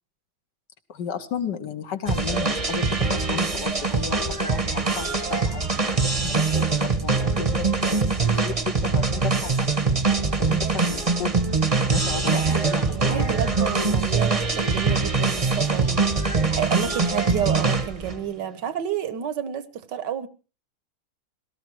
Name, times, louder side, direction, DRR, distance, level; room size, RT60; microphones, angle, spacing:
voice 1, 0.9-9.7 10.4-11.4 11.9-13.4, left 7 dB, 60° left, 1.6 m, -34 dB
sound 1, 2.1-18.2, right 4 dB, 20° right, 1.0 m, -23 dB
voice 2, 12.1-20.3, right 9 dB, 60° right, 1.5 m, -31 dB
17.5 x 13.5 x 4.7 m
omnidirectional pair, 2.3 m